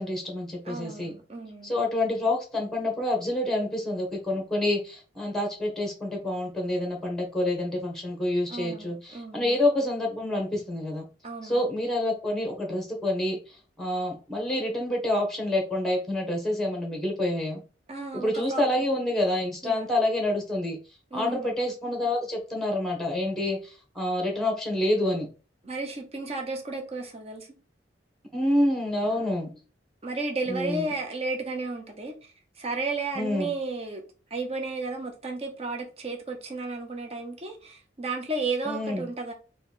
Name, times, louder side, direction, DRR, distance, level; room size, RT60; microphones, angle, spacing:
voice 1, 0.0-1.1 1.6-11.0 11.4-17.6 18.1-20.8 21.1-25.3 28.3-29.5 30.5-30.9 33.1-33.5 38.6-39.1, left 1 dB, ahead, 1.2 m, -27 dB
voice 2, 0.6-1.7 8.5-9.6 11.2-11.6 17.9-18.6 19.6-19.9 21.1-21.5 25.6-27.5 29.1-29.3 30.0-32.1 32.6-34.0 34.3-39.3, right 3 dB, 35° right, 0.9 m, -33 dB
4.1 x 2.4 x 4.1 m
head